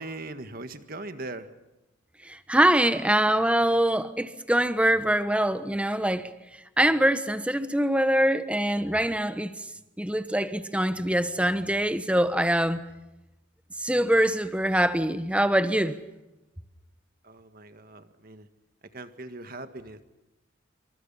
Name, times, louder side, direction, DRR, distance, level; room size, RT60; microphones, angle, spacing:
voice 1, 0.0-1.5 17.2-18.5 18.9-20.0, right 2 dB, 50° right, 1.7 m, -40 dB
voice 2, 2.2-6.3 6.8-9.5 10.0-12.8 13.8-16.0, right 1 dB, 5° right, 1.2 m, -24 dB
27.5 x 25.5 x 5.7 m
head